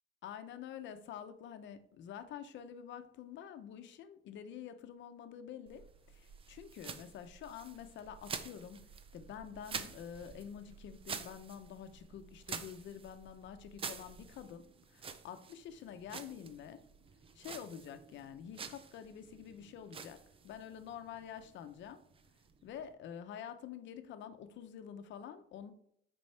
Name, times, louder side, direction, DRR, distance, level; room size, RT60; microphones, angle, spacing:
voice 1, 0.2-16.8 17.3-20.2 20.4-22.0 22.6-25.7, left 8 dB, 65° left, 9 dB, 0.8 m, -48 dB
sound 1, 5.7-22.9, right 6 dB, 25° right, 0.5 m, -49 dB
8.3 x 5.4 x 3.4 m, 0.70 s
cardioid pair, 160°, 20 cm